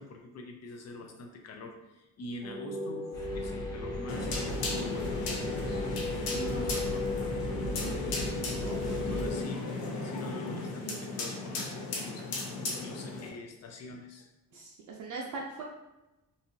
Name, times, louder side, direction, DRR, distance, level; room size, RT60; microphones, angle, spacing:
voice 1, 0.0-8.1 9.0-12.4 12.8-14.3, left 2 dB, 45° left, 3 dB, 0.5 m, -45 dB
sound 1, 2.4-9.4, left 2 dB, 15° right, 0.5 m, -37 dB
sound 2, 3.1-9.3, right 1 dB, 10° left, 0.8 m, -39 dB
sound 3, 4.1-13.3, left 3 dB, 90° left, 0.9 m, -35 dB
voice 2, 6.3-7.0 8.6-9.4 10.8-11.1 14.5-15.6, right 4 dB, 60° right, -1 dB, 0.5 m, -41 dB
3.9 x 2.7 x 2.7 m, 0.97 s
cardioid pair, 170°, 36 cm